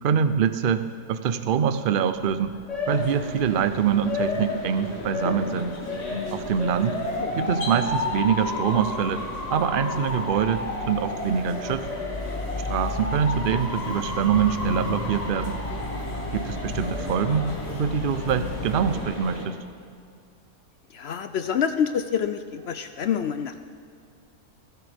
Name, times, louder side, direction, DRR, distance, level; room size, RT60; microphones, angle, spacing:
voice 1, 0.0-2.5 2.9-5.7 6.3-7.0 7.4-9.2 9.5-11.9 12.6-15.6 16.3-17.5 17.7-19.6, right 7 dB, 55° right, 11 dB, 0.6 m, -24 dB
Motor vehicle (road) / Siren, 2.1-18.9, left 2 dB, 25° left, 1.4 m, -32 dB
sound 1, 2.9-19.5, left 1 dB, 45° left, 2.6 m, -37 dB
voice 2, 20.9-23.6, left 8 dB, 70° left, 9 dB, 0.6 m, -27 dB
22.0 x 14.0 x 3.5 m, 2.3 s
omnidirectional pair, 1.6 m